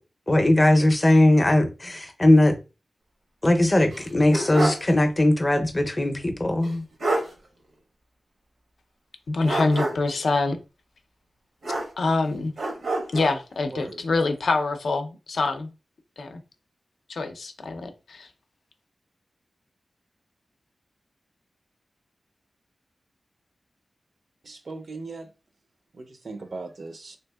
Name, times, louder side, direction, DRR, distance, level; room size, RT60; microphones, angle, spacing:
voice 1, 0.3-2.5 3.4-6.8, left 1 dB, 25° left, 0.5 m, -19 dB
sound 1, 3.9-4.9 5.2-5.3 6.6-6.7 7.0-7.3 9.4-10.2 11.6-12.2 12.6-13.4, right 2 dB, 85° right, 0.9 m, -28 dB
voice 2, 9.3-10.6 12.0-12.5 13.1-15.7 16.2-16.4 17.1-18.3, left 3 dB, 75° left, 0.5 m, -25 dB
voice 3, 13.7-14.1 24.4-25.3 25.9-27.2, right 3 dB, 55° right, 0.4 m, -38 dB
3.4 x 2.8 x 2.2 m
wide cardioid pair, 120°, 0 cm